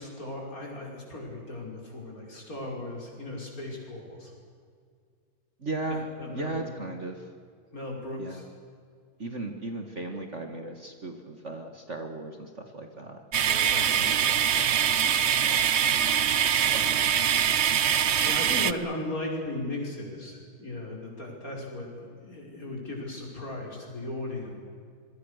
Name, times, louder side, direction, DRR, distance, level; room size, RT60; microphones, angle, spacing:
voice 1, 0.0-4.3 6.2-6.6 7.7-8.4 13.4-15.2 16.8-17.3 18.2-24.5, left 1 dB, 45° left, 0 dB, 6.1 m, -37 dB
voice 2, 5.6-6.1 6.3-7.2 8.2-8.4 9.2-13.2 15.3-15.7 16.7-16.9 18.1-18.4, right 2 dB, 40° right, 5 dB, 2.0 m, -36 dB
sound 1, 13.3-18.7, right 8 dB, 60° right, 0.6 m, -23 dB
27.0 x 23.0 x 6.6 m, 2.1 s
omnidirectional pair, 2.1 m